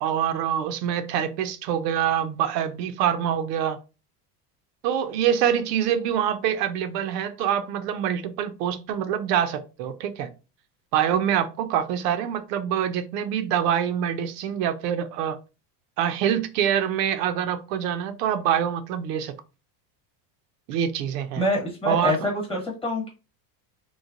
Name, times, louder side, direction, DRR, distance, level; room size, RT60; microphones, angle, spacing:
voice 1, 0.0-3.8 4.8-10.3 10.9-15.4 16.0-19.3 20.7-21.4 21.9-22.2, right 9 dB, 85° right, 0.6 m, -25 dB
voice 2, 21.4-23.1, left 1 dB, 10° left, 1.0 m, -26 dB
3.0 x 2.2 x 2.4 m
supercardioid pair, 140°, 48 cm